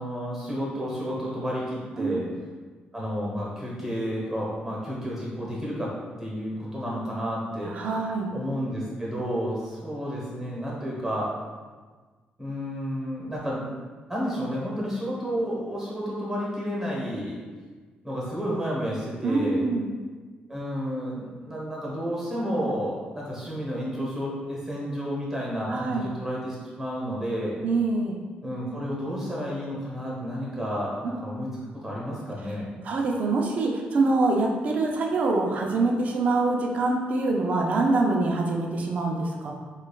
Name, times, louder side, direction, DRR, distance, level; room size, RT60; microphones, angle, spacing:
voice 1, 0.0-2.2 2.9-5.9 6.2-7.7 8.3-11.3 12.4-13.7 14.1-17.4 18.0-19.6 20.5-27.6 28.4-31.5 31.8-32.7, equal, 10° right, -5 dB, 1.0 m, -31 dB
voice 2, 7.6-8.3 19.2-19.9 25.7-26.1 27.6-28.2 31.0-31.1 32.8-39.5, right 3 dB, 45° right, 0 dB, 0.4 m, -25 dB
5.1 x 2.3 x 2.3 m, 1.4 s
cardioid pair, 145°, 3 cm